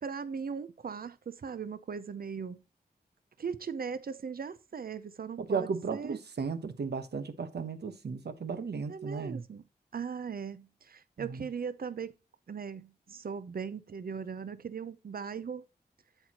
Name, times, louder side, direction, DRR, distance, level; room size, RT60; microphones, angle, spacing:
voice 1, 0.0-2.6 3.4-6.2 8.9-9.6 9.9-12.1 12.5-15.7, right 6 dB, 60° right, 0.6 m, -39 dB
voice 2, 5.4-9.4 11.2-11.5, right 5 dB, 85° right, 1.0 m, -35 dB
8.2 x 8.0 x 2.9 m
wide cardioid pair, 95°, 17 cm